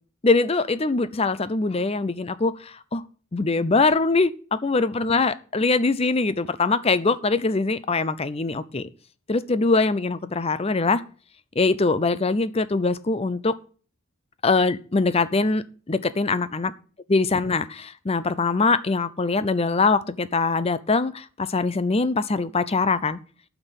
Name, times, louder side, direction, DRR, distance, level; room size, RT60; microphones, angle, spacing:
voice 1, 0.2-3.0 3.3-8.9 9.3-11.0 11.6-13.5 14.4-16.7 17.1-23.2, left 3 dB, 25° left, 15 dB, 0.5 m, -23 dB
9.1 x 6.0 x 8.1 m, 0.41 s
head